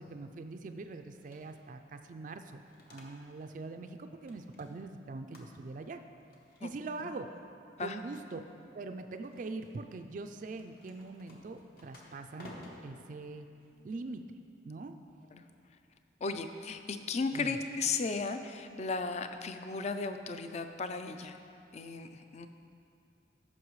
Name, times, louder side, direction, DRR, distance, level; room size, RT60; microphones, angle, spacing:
voice 1, 0.0-2.6 2.9-6.0 6.6-7.3 7.8-8.4 8.7-12.5 12.8-13.5 13.8-14.2 14.7-15.0 16.3-16.4 17.3-17.5, right 3 dB, 45° right, 7 dB, 0.3 m, -42 dB
sound 1, 1.1-1.7 2.4-3.6 3.9-4.9 5.3-5.8 6.2-7.0 7.7-8.6 9.1-9.7 10.5-14.2, left 1 dB, 55° left, 1.0 m, -56 dB
voice 2, 16.2-21.4 21.7-22.5, left 4 dB, 35° left, 8 dB, 0.4 m, -35 dB
14.0 x 6.0 x 3.1 m, 2.6 s
head